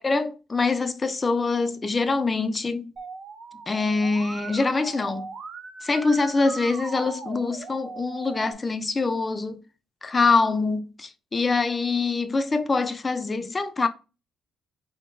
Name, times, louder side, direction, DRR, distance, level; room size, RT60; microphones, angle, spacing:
voice 1, 0.0-2.9 3.7-5.3 5.8-9.6 10.0-13.9, left 3 dB, 20° left, 0.4 m, -24 dB
Musical instrument, 3.0-8.5, right 5 dB, 50° right, 0.5 m, -39 dB
4.4 x 3.6 x 2.6 m
cardioid pair, 150°, 0 cm